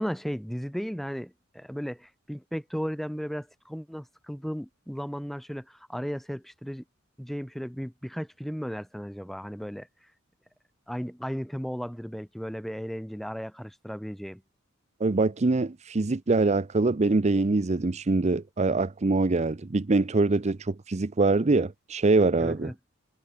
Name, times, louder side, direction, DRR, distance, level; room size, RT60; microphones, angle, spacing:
voice 1, 0.0-6.8 7.2-9.9 10.9-14.4 22.4-22.7, equal, ahead, 2.8 m, -35 dB
voice 2, 15.0-22.7, right 3 dB, 35° right, 0.6 m, -24 dB
head